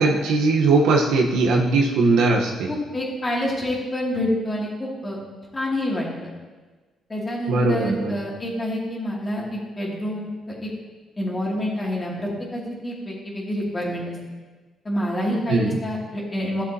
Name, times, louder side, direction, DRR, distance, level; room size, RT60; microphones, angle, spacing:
voice 1, 0.0-2.7 7.5-8.2 15.5-15.8, right 3 dB, 85° right, 0 dB, 1.2 m, -19 dB
voice 2, 2.7-5.2 5.5-6.3 7.1-10.7 11.2-14.1 14.8-16.6, left 1 dB, 25° left, -4 dB, 2.8 m, -27 dB
13.5 x 7.1 x 3.0 m, 1.3 s
cardioid pair, 90°, 0 cm